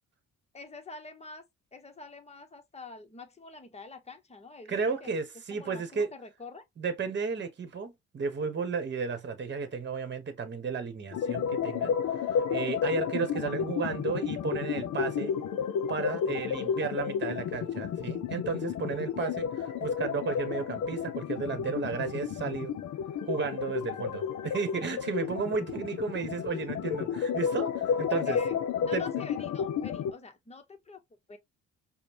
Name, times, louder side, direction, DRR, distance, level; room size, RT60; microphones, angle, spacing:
voice 1, 0.5-1.4 1.7-5.2 5.5-6.6 16.4-16.8 28.1-28.6 28.8-31.0 31.3-31.4, left 4 dB, 20° left, 0.9 m, -46 dB
voice 2, 4.7-6.1 6.8-11.9 12.5-15.3 15.9-22.7 23.3-27.7 28.0-28.4 28.9-29.0, right 5 dB, 35° right, 1.1 m, -33 dB
sound 1, 11.1-30.1, left 7 dB, 70° left, 0.7 m, -32 dB
5.0 x 2.1 x 2.8 m
cardioid pair, 90°, 30 cm